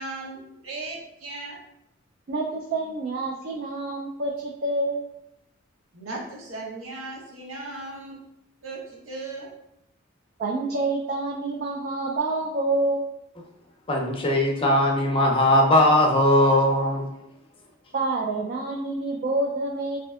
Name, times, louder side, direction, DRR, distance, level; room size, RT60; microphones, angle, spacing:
voice 1, 0.0-1.6 5.9-8.2 8.6-9.5, right 2 dB, 85° right, -2 dB, 0.8 m, -37 dB
voice 2, 2.3-5.1 10.4-13.1 17.9-20.0, right 2 dB, 50° right, -2 dB, 0.4 m, -27 dB
voice 3, 13.9-17.1, left 1 dB, 25° left, 0 dB, 0.4 m, -19 dB
3.2 x 2.6 x 2.3 m, 0.82 s
head